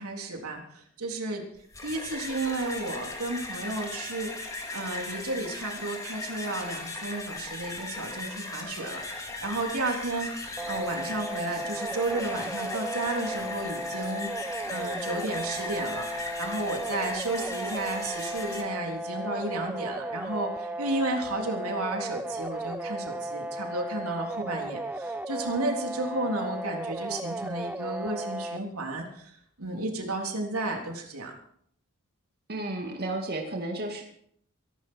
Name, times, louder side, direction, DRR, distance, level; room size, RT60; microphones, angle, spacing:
voice 1, 0.0-1.4 1.8-14.3 14.6-29.3 29.6-31.3, right 2 dB, 90° right, 2 dB, 3.6 m, -33 dB
sound 1, 1.6-18.6, left 2 dB, 15° left, 2.8 m, -38 dB
sound 2, 10.6-28.6, right 1 dB, 5° right, 0.5 m, -35 dB
voice 2, 32.5-34.0, right 2 dB, 45° right, 1 dB, 2.4 m, -32 dB
23.5 x 11.5 x 4.7 m, 0.67 s
head